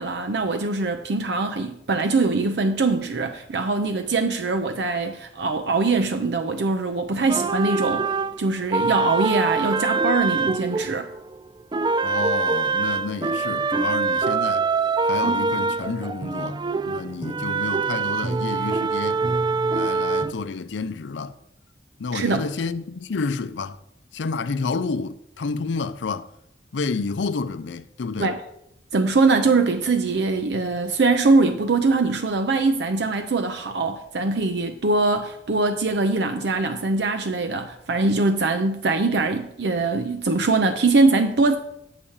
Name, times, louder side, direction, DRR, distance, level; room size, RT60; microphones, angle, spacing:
voice 1, 0.0-8.1 8.4-11.1 22.1-22.4 28.2-28.4 28.9-41.6, right 3 dB, 70° right, 0.6 m, -22 dB
sound 1, 7.3-11.4 11.7-20.3, right 4 dB, 25° right, 0.3 m, -24 dB
voice 2, 12.0-14.7 15.1-19.2 19.7-21.4 22.0-23.8 24.1-26.3 26.7-28.4, left 4 dB, 85° left, 0.5 m, -30 dB
8.5 x 4.9 x 7.2 m
head